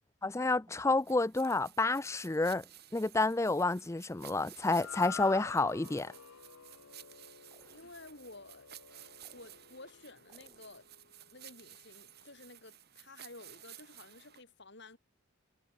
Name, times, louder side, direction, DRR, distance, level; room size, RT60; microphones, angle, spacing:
voice 1, 0.2-2.6 2.9-6.1, left 3 dB, 15° left, 0.4 m, -30 dB
sound 1, 0.7-1.4 2.4-3.1 3.4-4.2 7.5-8.2 9.2-10.0 10.3-11.0, right 2 dB, 25° right, 7.8 m, -66 dB
sound 2, 1.0-14.4, right 12 dB, 45° right, 3.7 m, -55 dB
sound 3, 4.6-11.0, left 7 dB, 80° left, 0.8 m, -49 dB
voice 2, 7.7-8.7 9.3-10.9 11.3-15.0, left 2 dB, 55° left, 3.9 m, -53 dB
head